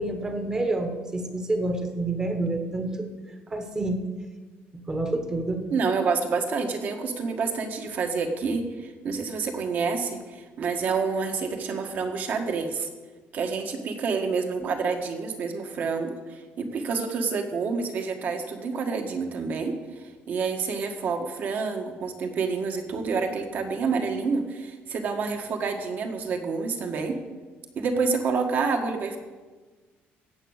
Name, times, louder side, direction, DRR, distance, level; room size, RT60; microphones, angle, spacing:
voice 1, 0.0-3.1 3.5-4.0 4.7-5.6, right 2 dB, 15° right, 6 dB, 1.2 m, -28 dB
voice 2, 5.7-12.9 13.3-16.1 16.6-27.2 27.7-29.2, right 4 dB, 45° right, 5 dB, 1.5 m, -28 dB
14.5 x 8.5 x 6.5 m, 1.4 s
cardioid pair, 170°, 4 cm